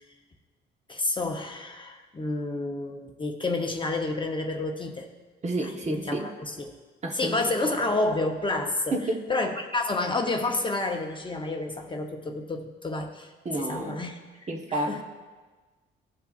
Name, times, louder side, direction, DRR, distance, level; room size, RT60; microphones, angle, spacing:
voice 1, 0.9-5.1 5.6-6.7 7.1-9.0 9.3-13.3 13.6-15.0, left 2 dB, 25° left, 3 dB, 0.8 m, -30 dB
voice 2, 5.4-6.3 7.0-7.4 8.9-9.3 13.4-14.0 14.5-15.0, right 2 dB, 35° right, 1 dB, 1.1 m, -30 dB
17.0 x 5.7 x 2.4 m, 1.3 s
cardioid pair, 90°, 20 cm